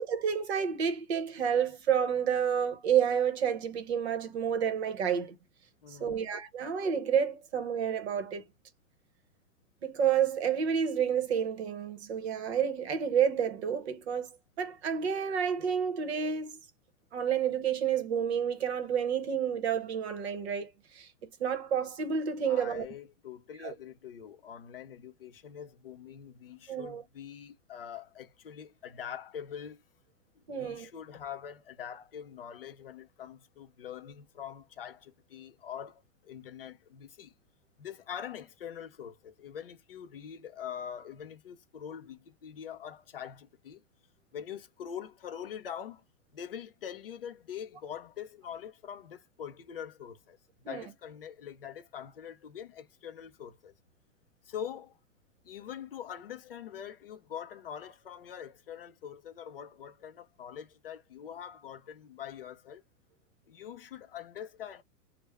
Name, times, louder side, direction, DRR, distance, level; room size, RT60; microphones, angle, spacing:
voice 1, 0.0-5.3 5.9-8.4 9.8-16.6 17.1-21.1 21.4-22.9 23.6-23.7 26.7-27.0 30.5-30.9 50.6-50.9, right 8 dB, 45° right, 0.9 m, -30 dB
voice 2, 5.8-6.3 22.5-29.8 30.4-37.3 37.8-43.8 44.3-46.0 46.3-53.7 54.4-55.0 55.4-62.8 63.5-64.8, left 8 dB, 40° left, 0.4 m, -44 dB
3.2 x 2.1 x 3.3 m
supercardioid pair, 175°, 46 cm